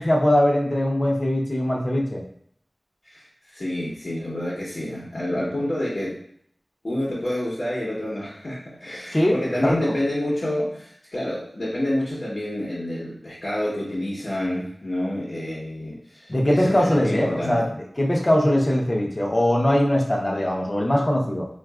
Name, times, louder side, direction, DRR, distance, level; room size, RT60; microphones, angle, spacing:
voice 1, 0.0-2.2 9.1-9.3 9.6-9.9 16.3-21.5, left 1 dB, 35° left, -1 dB, 0.7 m, -21 dB
voice 2, 3.0-6.2 6.8-17.7, left 1 dB, 65° left, -7 dB, 1.0 m, -28 dB
4.0 x 2.4 x 2.3 m, 0.66 s
wide cardioid pair, 45°, 0 cm